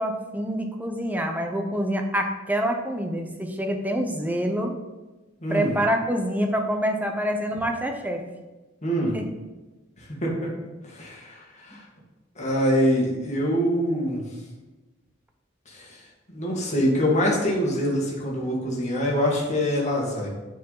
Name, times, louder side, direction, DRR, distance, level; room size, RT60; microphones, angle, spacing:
voice 1, 0.0-4.8 5.5-8.2 9.1-9.3, equal, 10° right, 3 dB, 0.7 m, -26 dB
voice 2, 5.4-5.7 8.8-9.1 10.2-10.5 10.9-11.8 12.4-14.2 15.7-16.0 16.3-20.3, equal, 35° left, -3 dB, 1.7 m, -24 dB
8.2 x 4.6 x 3.9 m, 1.1 s
head